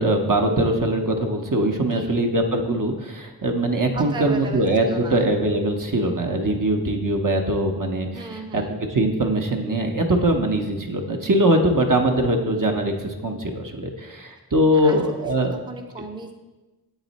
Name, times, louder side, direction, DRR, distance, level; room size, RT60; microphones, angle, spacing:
voice 1, 0.0-8.2 8.5-8.6 8.9-15.5, right 1 dB, 55° right, 3 dB, 0.8 m, -22 dB
voice 2, 1.8-2.2 3.9-5.2 8.1-8.8 14.7-16.3, right 3 dB, 10° right, 3 dB, 0.5 m, -36 dB
8.2 x 4.0 x 4.0 m, 1.2 s
wide cardioid pair, 45°, 39 cm